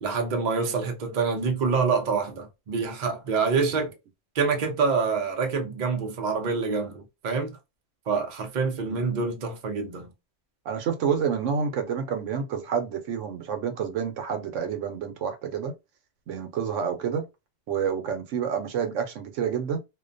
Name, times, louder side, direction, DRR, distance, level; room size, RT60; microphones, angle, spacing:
voice 1, 0.0-3.9 4.3-7.6 8.1-10.1, right 5 dB, 45° right, 0.6 m, -26 dB
voice 2, 8.9-9.3 10.7-15.7 16.3-17.2 17.7-19.8, right 7 dB, 80° right, 1.0 m, -29 dB
2.5 x 2.2 x 2.4 m
omnidirectional pair, 1.3 m